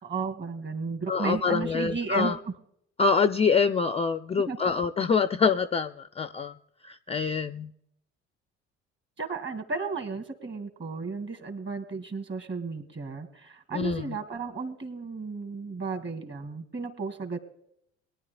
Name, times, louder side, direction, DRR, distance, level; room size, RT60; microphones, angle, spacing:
voice 1, 0.0-2.5 4.4-4.6 9.2-17.4, right 4 dB, 35° right, 2.4 m, -34 dB
voice 2, 1.1-2.4 3.0-6.5 6.8-7.7 13.7-14.2, left 5 dB, 20° left, 0.4 m, -25 dB
21.5 x 10.5 x 2.3 m
hypercardioid pair, 55°, 34 cm